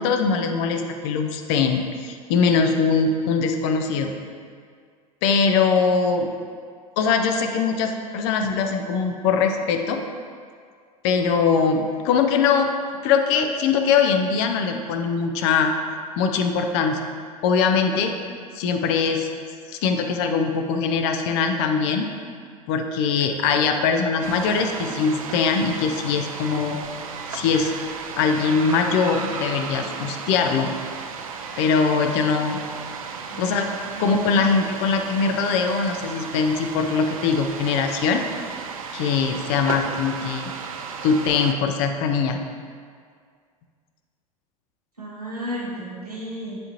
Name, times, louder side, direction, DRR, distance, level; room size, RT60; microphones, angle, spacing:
voice 1, 0.0-4.1 5.2-6.3 7.0-10.0 11.0-12.7 13.0-15.7 16.2-17.0 17.4-18.1 18.5-19.3 19.7-22.1 22.7-26.8 27.3-27.7 28.2-30.7 31.6-32.6 33.4-33.6 34.0-38.2 38.9-40.5 41.0-42.4, left 5 dB, 50° left, 5 dB, 0.6 m, -22 dB
sound 1, 24.2-41.5, right 5 dB, 65° right, 0.5 m, -34 dB
voice 2, 33.3-34.5 45.0-46.6, equal, 90° right, -8 dB, 1.6 m, -34 dB
9.9 x 3.7 x 3.0 m, 2.1 s
figure-of-eight pair, 80°, 19 cm